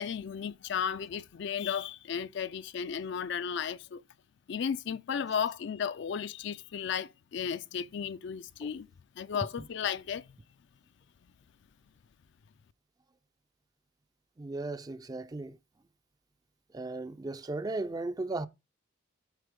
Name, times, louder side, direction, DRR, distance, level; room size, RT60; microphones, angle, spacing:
voice 1, 0.0-4.0 4.5-8.9 9.2-10.3, left 7 dB, 60° left, 0.4 m, -34 dB
voice 2, 14.4-15.6 16.7-18.5, right 2 dB, 20° right, 0.4 m, -36 dB
8.1 x 4.1 x 5.0 m
head